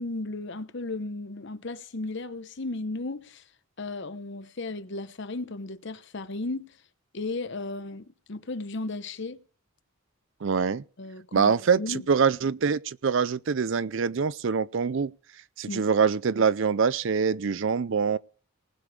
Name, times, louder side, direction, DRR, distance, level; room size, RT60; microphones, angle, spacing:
voice 1, 0.0-3.4 3.8-6.8 7.1-9.4 11.0-12.0 15.7-15.9, left 2 dB, 55° left, 0.9 m, -35 dB
voice 2, 10.4-10.8 11.3-15.1 15.6-18.2, right 6 dB, 60° right, 0.5 m, -24 dB
19.5 x 7.0 x 4.8 m
head